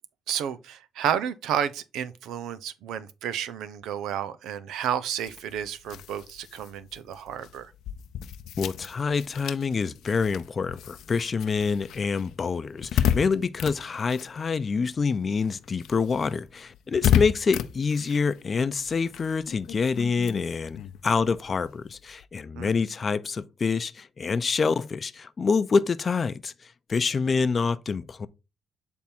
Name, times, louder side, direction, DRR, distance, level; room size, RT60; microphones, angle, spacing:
voice 1, 0.3-7.7 22.5-22.7, right 9 dB, 85° right, 0.6 m, -31 dB
sound 1, 5.1-15.0 15.3-22.2, left 10 dB, 80° left, 0.6 m, -32 dB
voice 2, 8.6-28.3, left 5 dB, 40° left, 0.6 m, -26 dB
8.4 x 3.6 x 4.4 m
cardioid pair, 90°, 0 cm